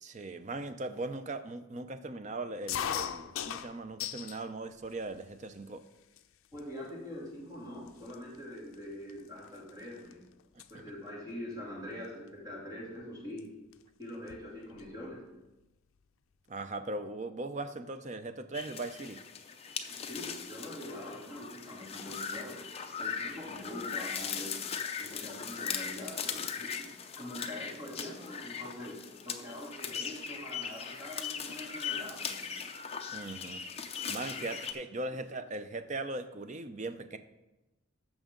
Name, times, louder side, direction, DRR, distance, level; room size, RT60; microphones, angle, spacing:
voice 1, 0.0-5.8 16.5-19.2 33.1-33.6 34.1-37.2, right 2 dB, 35° right, 9 dB, 0.5 m, -39 dB
sound 1, 2.7-4.4 4.8-5.5 6.2-6.3 6.5-6.9 7.5-7.6 7.9-10.1 10.4-10.7 12.0-12.3 13.4-13.5 13.7-13.8 14.1-15.0, left 9 dB, 75° left, 0.4 m, -39 dB
voice 2, 6.5-10.2 10.7-13.5 14.0-15.2 19.9-24.6 25.0-26.9 27.2-32.5 34.3-34.4, left 1 dB, 20° right, -5 dB, 2.8 m, -44 dB
sound 2, 18.5-34.7, left 6 dB, 30° left, 0.6 m, -39 dB
14.0 x 6.2 x 3.8 m, 1.0 s
head